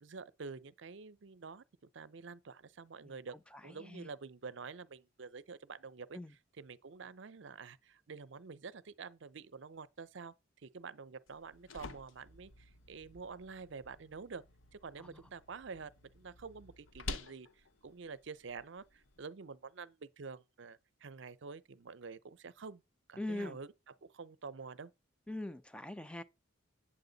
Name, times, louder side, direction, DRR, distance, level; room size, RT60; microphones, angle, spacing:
voice 1, 0.0-3.4 3.6-6.2 6.6-10.3 10.6-14.4 14.7-22.8 23.1-24.9, right 5 dB, 60° right, 0.5 m, -48 dB
voice 2, 3.6-4.1 6.1-6.3 15.0-15.2 23.2-23.6 25.3-26.2, left 1 dB, 5° left, 0.4 m, -42 dB
sound 1, 11.3-19.2, left 3 dB, 75° left, 0.8 m, -50 dB
8.7 x 7.6 x 3.9 m
head